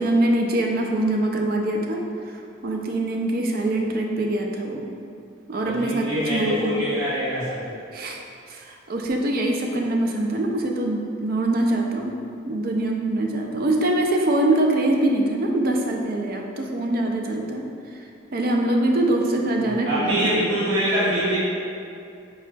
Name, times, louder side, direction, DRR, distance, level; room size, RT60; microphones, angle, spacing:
voice 1, 0.0-4.9 5.5-6.8 7.9-8.2 8.5-12.2 12.5-17.7 18.3-20.5, right 1 dB, 45° right, 1 dB, 0.4 m, -23 dB
voice 2, 5.6-7.7 19.7-21.4, equal, 75° right, -10 dB, 1.0 m, -24 dB
5.9 x 4.1 x 2.2 m, 2.5 s
head